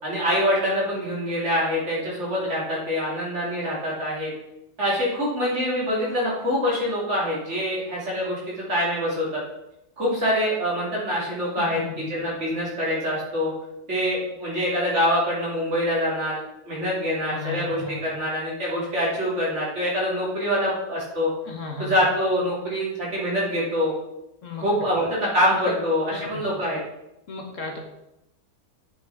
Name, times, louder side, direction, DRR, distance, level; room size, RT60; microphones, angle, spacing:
voice 1, 0.0-4.3 4.8-9.4 10.0-13.5 13.9-21.3 21.8-23.9 24.6-26.8, equal, 50° right, -5 dB, 3.2 m, -25 dB
voice 2, 11.6-12.1 17.3-18.0 21.4-21.9 24.4-24.7 26.3-26.4 27.3-27.8, left 4 dB, 55° left, 1 dB, 1.5 m, -34 dB
8.1 x 5.6 x 4.8 m, 0.87 s
omnidirectional pair, 1.6 m